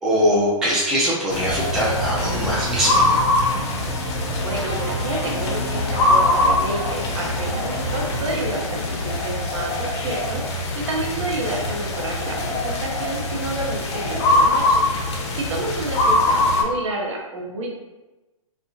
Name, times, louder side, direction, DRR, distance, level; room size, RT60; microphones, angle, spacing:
voice 1, 0.0-3.2, equal, 5° right, -6 dB, 0.3 m, -22 dB
sound 1, 1.3-16.6, left 2 dB, 55° left, 0.5 m, -23 dB
sound 2, 1.5-8.4, right 3 dB, 25° right, 1.4 m, -32 dB
voice 2, 4.4-10.4 10.7-14.8 15.3-17.7, right 2 dB, 60° right, 0 dB, 0.6 m, -29 dB
2.3 x 2.1 x 2.6 m, 1.1 s
figure-of-eight pair, 120°, 18 cm